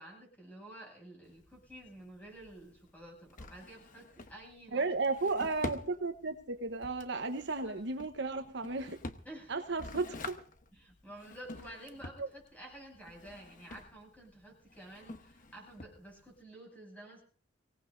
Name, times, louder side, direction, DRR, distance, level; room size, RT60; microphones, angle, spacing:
voice 1, 0.0-4.9 7.6-7.9 9.2-9.7 10.7-17.2, right 1 dB, 10° left, -1 dB, 7.3 m, -51 dB
Drawer open or close, 1.2-16.4, left 2 dB, 45° left, 1.1 m, -48 dB
voice 2, 4.7-9.0 9.5-10.4 12.2-12.3, right 3 dB, 65° right, 7 dB, 1.1 m, -34 dB
24.0 x 18.0 x 2.7 m, 0.42 s
head